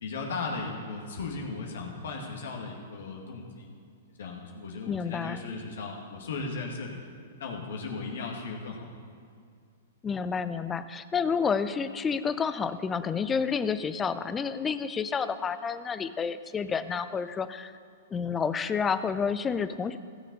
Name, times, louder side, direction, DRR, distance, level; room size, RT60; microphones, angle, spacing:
voice 1, 0.0-3.7 4.2-7.0 7.4-8.9, left 4 dB, 75° left, 0 dB, 1.8 m, -36 dB
voice 2, 4.9-5.4 10.0-17.7 18.1-20.0, left 6 dB, 20° left, 12 dB, 0.5 m, -29 dB
16.0 x 6.7 x 5.3 m, 2.3 s
hypercardioid pair, 125°, 0 cm